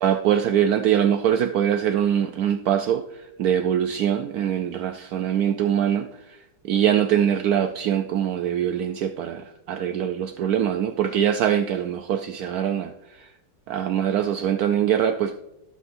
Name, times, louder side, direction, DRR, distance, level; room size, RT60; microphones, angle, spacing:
voice 1, 0.0-3.0 3.4-6.1 6.7-12.9 13.7-15.5, right 9 dB, 80° right, 7 dB, 0.8 m, -23 dB
18.0 x 7.8 x 2.5 m, 0.91 s
omnidirectional pair, 2.1 m